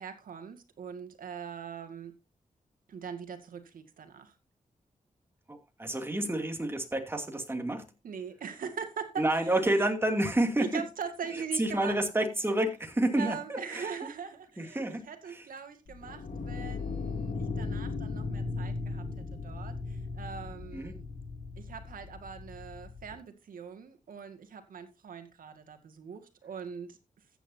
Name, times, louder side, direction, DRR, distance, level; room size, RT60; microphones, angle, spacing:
voice 1, 0.0-2.1 2.9-4.3 8.0-9.5 10.6-12.0 13.1-21.1 21.6-27.0, right 6 dB, 80° right, 2.0 m, -41 dB
voice 2, 5.5-7.9 9.2-10.8 11.3-13.9 14.6-15.4 20.7-20.9, right 1 dB, 15° right, 2.6 m, -29 dB
sound 1, 15.9-23.1, left 3 dB, 65° left, 2.8 m, -37 dB
14.5 x 9.2 x 2.7 m
cardioid pair, 85°, 14 cm